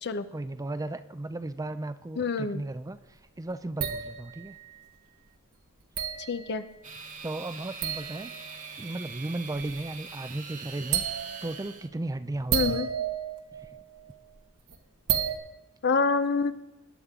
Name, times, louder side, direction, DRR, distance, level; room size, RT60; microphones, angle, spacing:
voice 1, 0.3-4.6 7.2-8.3 8.8-12.8 13.5-13.8, right 2 dB, 15° right, 11 dB, 0.4 m, -35 dB
voice 2, 2.2-2.6 6.3-6.6 12.5-12.9 15.8-16.5, left 4 dB, 50° left, 11 dB, 0.7 m, -26 dB
sound 1, 3.8-4.7 6.0-6.8 7.8-8.7 9.6-9.8 10.1-10.2 10.9-11.6 12.3-14.4 14.7-14.8 15.1-15.4, right 8 dB, 90° right, 1.4 m, -32 dB
sound 2, 6.8-11.9, right 5 dB, 35° right, 1.2 m, -43 dB
21.0 x 9.8 x 3.7 m, 0.97 s
head